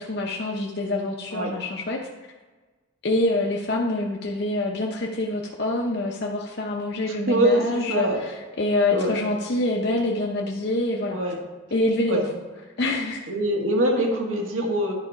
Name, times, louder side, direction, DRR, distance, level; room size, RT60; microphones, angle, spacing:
voice 1, 0.0-2.0 3.0-11.2 11.7-12.2 12.8-13.2, left 2 dB, 55° left, -1 dB, 0.7 m, -26 dB
voice 2, 7.0-8.2 8.9-9.1 11.1-11.4 12.1-12.2 13.3-14.9, right 1 dB, 80° right, 0 dB, 1.7 m, -23 dB
10.5 x 4.1 x 4.8 m, 1.3 s
head